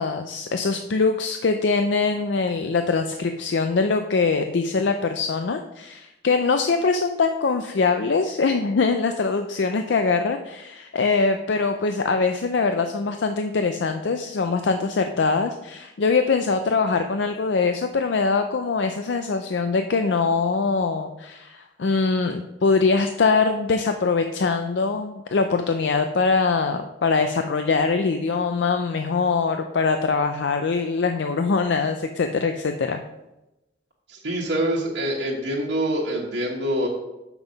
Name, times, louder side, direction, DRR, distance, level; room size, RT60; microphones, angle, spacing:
voice 1, 0.0-33.0, left 4 dB, 75° left, 6 dB, 0.5 m, -23 dB
voice 2, 34.1-36.9, right 1 dB, 80° right, -6 dB, 1.4 m, -25 dB
7.0 x 6.0 x 5.3 m, 0.97 s
head